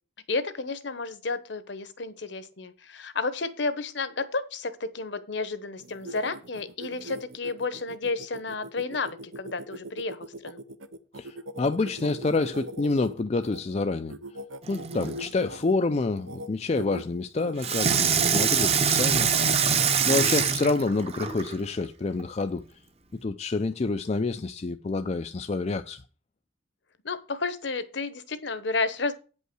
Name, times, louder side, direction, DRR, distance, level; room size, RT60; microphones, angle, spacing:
voice 1, 0.3-10.6 27.0-29.1, left 3 dB, 65° left, 1.0 m, -31 dB
sound 1, 5.8-13.6 14.1-15.7 16.2-16.5 16.7-17.0 17.4-18.3 18.8-20.5, right 1 dB, 85° right, 0.8 m, -41 dB
voice 2, 11.1-14.1 14.7-19.3 20.0-22.6 23.2-26.0, left 3 dB, 35° left, 0.4 m, -28 dB
Water tap faucet / Sink (filling or washing), 14.6-15.3 17.6-21.5 22.2-22.3, right 6 dB, 30° right, 0.8 m, -24 dB
8.8 x 5.5 x 6.2 m
head